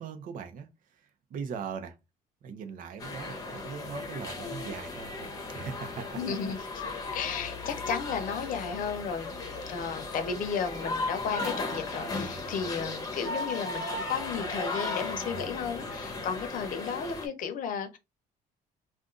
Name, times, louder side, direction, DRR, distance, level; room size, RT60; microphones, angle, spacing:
voice 1, 0.0-2.0 2.4-5.3 5.5-6.2, right 6 dB, 55° right, 0.7 m, -40 dB
sound 1, 3.0-17.3, left 3 dB, 25° left, 0.9 m, -36 dB
voice 2, 6.1-6.6 7.1-9.4 9.7-18.0, left 6 dB, 55° left, 0.8 m, -34 dB
2.5 x 2.5 x 3.7 m
cardioid pair, 145°, 16 cm